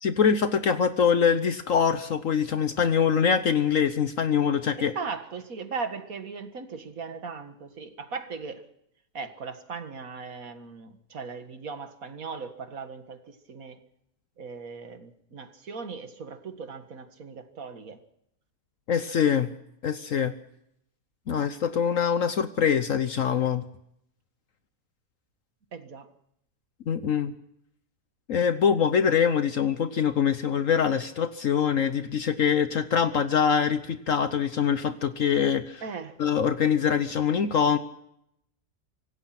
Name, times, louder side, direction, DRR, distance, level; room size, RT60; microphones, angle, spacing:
voice 1, 0.0-4.9 18.9-19.5 19.8-20.3 21.3-23.6 26.9-27.3 28.3-35.8 36.2-37.8, left 7 dB, 60° left, 11 dB, 1.2 m, -24 dB
voice 2, 4.8-8.7 9.1-13.8 14.4-18.0 21.3-21.5 25.7-26.1 35.8-36.2, right 5 dB, 60° right, 8 dB, 2.2 m, -38 dB
25.5 x 17.5 x 6.0 m, 0.76 s
omnidirectional pair, 1.7 m